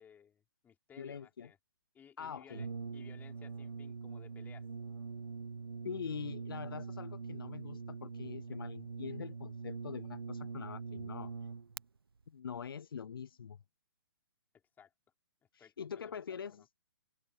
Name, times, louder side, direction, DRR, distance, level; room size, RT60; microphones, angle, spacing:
voice 1, 0.0-1.6 1.9-4.7 14.5-14.9 15.6-16.7, left 8 dB, 15° left, 5.2 m, -60 dB
voice 2, 1.0-1.5 2.2-2.6 5.8-11.3 12.3-13.6 15.5-16.6, left 7 dB, 75° left, 0.6 m, -44 dB
Brass instrument, 2.5-11.8, right 5 dB, 85° right, 1.1 m, -43 dB
figure-of-eight pair, 130°, 12 cm